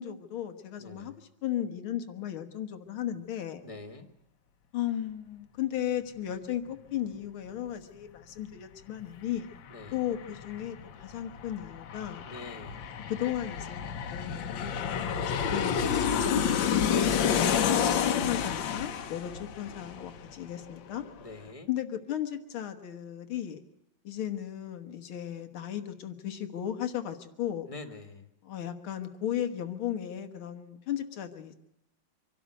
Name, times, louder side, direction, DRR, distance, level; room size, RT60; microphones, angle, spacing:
voice 1, 0.0-3.6 4.7-9.5 9.9-12.2 13.1-13.8 14.1-17.4 17.9-21.0 21.7-23.6 24.0-27.7 28.4-31.6, left 11 dB, 90° left, 7 dB, 2.2 m, -35 dB
voice 2, 0.8-1.2 3.6-4.1 9.7-10.1 12.2-12.9 21.2-21.7 27.7-28.3, left 2 dB, 20° left, 7 dB, 1.3 m, -45 dB
Aircraft, 9.0-9.1 9.4-20.7 21.0-21.1, left 7 dB, 70° left, 1.6 m, -30 dB
25.0 x 12.0 x 9.1 m, 0.88 s
omnidirectional pair, 2.2 m